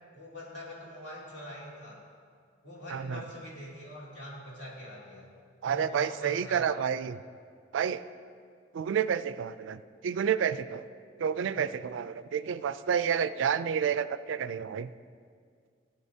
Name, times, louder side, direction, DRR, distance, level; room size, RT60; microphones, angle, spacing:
voice 1, 0.1-2.1 2.6-5.3 5.7-6.7, left 1 dB, 65° left, -5 dB, 2.7 m, -44 dB
voice 2, 2.9-3.2 5.6-7.2 7.7-8.0 8.7-10.9 11.2-14.9, right 7 dB, 75° right, 14 dB, 0.3 m, -30 dB
16.5 x 8.3 x 2.8 m, 2.1 s
head